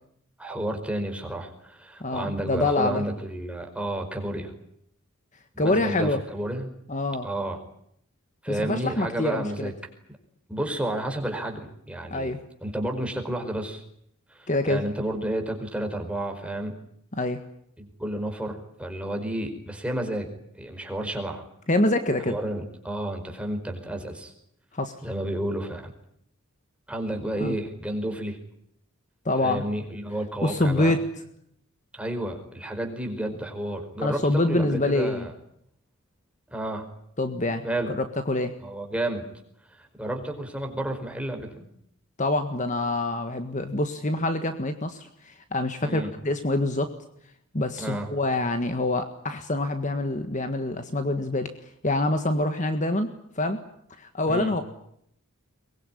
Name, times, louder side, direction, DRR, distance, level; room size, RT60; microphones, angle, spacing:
voice 1, 0.4-4.5 5.5-6.7 7.2-7.6 8.4-9.7 10.5-12.3 12.6-13.8 14.3-16.8 17.8-21.4 22.3-24.3 25.0-25.9 26.9-28.4 29.4-31.0 31.9-35.3 36.5-36.9 37.6-37.9 38.6-39.3 39.7-41.6 45.8-46.1 47.8-48.1 54.3-54.5, right 1 dB, 5° right, 2 dB, 4.9 m, -31 dB
voice 2, 2.0-3.0 5.6-6.2 6.9-7.3 8.5-9.7 12.1-12.4 14.5-14.8 17.2-17.4 21.7-22.4 24.7-25.0 27.4-27.6 29.3-29.6 30.4-31.0 34.0-35.3 37.2-37.6 37.9-38.5 42.2-46.9 47.5-51.5 51.8-53.1 53.4-53.6 54.0-54.6, left 2 dB, 35° left, 8 dB, 1.6 m, -26 dB
23.5 x 22.0 x 10.0 m, 0.71 s
head